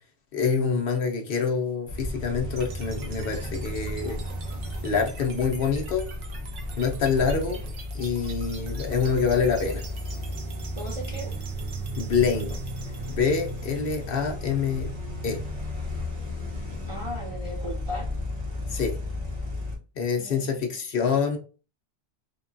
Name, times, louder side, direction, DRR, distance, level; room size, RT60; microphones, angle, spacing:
voice 1, 0.3-4.2 4.8-6.1 6.8-7.6 7.9-9.8 12.0-12.6 13.1-14.9 15.2-15.4 18.7-19.0 20.0-21.4, left 5 dB, 60° left, 0.7 m, -26 dB
sound 1, 1.9-19.8, left 1 dB, 70° right, 1.3 m, -34 dB
sound 2, 2.6-14.6, right 5 dB, 90° right, 1.0 m, -47 dB
voice 2, 10.8-11.4 16.9-18.1 20.2-20.7, equal, 45° right, 0.4 m, -37 dB
3.6 x 2.2 x 2.5 m
omnidirectional pair, 1.2 m